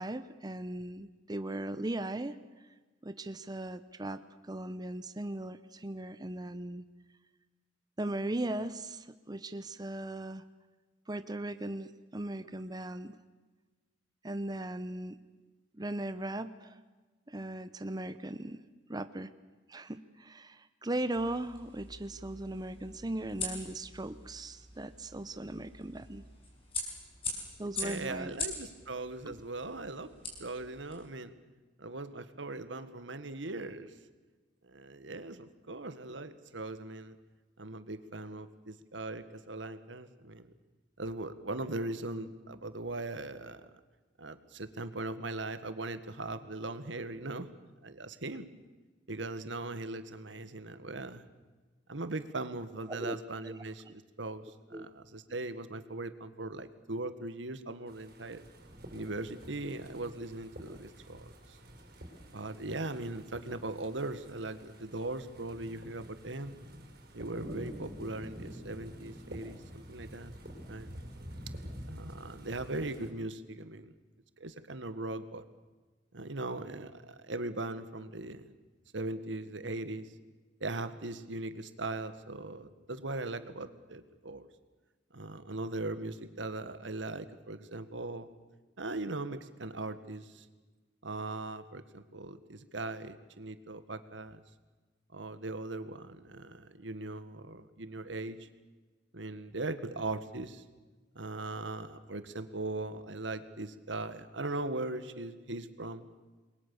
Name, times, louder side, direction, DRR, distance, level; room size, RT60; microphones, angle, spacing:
voice 1, 0.0-2.4 3.0-6.8 8.0-10.4 11.1-13.2 14.2-15.2 15.7-16.8 17.3-18.6 18.9-19.3 19.7-26.2 27.6-28.3 29.3-29.4 52.9-53.2 53.4-53.5 54.7-54.9, right 1 dB, 20° right, 11 dB, 0.8 m, -38 dB
sound 1, 21.1-31.1, left 2 dB, 30° left, 6.5 m, -43 dB
voice 2, 27.8-30.1 30.4-31.3 31.8-34.0 34.6-37.2 37.6-40.5 41.0-43.7 44.2-47.5 47.8-48.5 49.1-51.2 51.9-58.4 58.9-61.6 62.3-66.6 67.1-70.3 70.7-70.9 71.9-73.9 74.4-75.4 76.1-78.5 78.9-80.1 80.6-84.5 85.1-88.3 88.8-90.5 91.0-94.4 95.1-98.5 99.1-100.6 101.1-106.1, right 2 dB, 80° right, 11 dB, 1.7 m, -39 dB
sound 2, 57.9-73.1, equal, 55° right, 5.6 m, -48 dB
28.5 x 22.0 x 7.1 m, 1.3 s
head